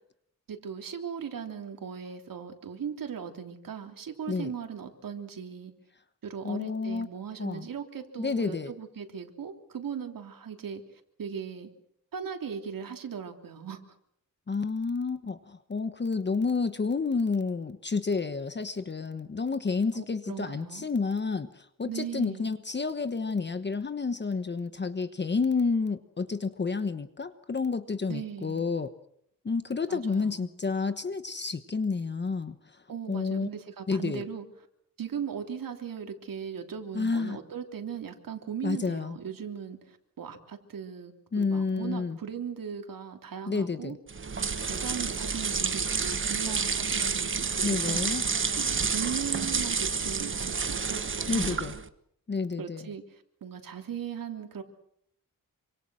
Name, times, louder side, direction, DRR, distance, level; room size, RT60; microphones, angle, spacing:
voice 1, 0.5-5.7 6.2-10.8 11.2-11.7 12.1-13.8 19.9-20.9 21.9-22.5 28.1-28.6 29.9-30.5 32.9-34.5 35.0-44.0 44.7-48.0 48.6-51.6 52.6-54.6, right 7 dB, 80° right, 4 dB, 3.4 m, -38 dB
voice 2, 6.4-7.1 7.4-7.7 8.2-8.7 14.5-28.9 29.4-32.8 33.1-33.5 33.9-34.2 36.9-37.4 38.6-39.2 41.3-42.2 43.5-44.0 47.6-48.2 51.3-51.7 52.3-52.9, left 4 dB, 30° left, 11 dB, 1.1 m, -30 dB
sound 1, 44.1-51.9, right 5 dB, 35° right, 1.4 m, -29 dB
27.0 x 25.5 x 6.4 m, 0.71 s
wide cardioid pair, 145°, 33 cm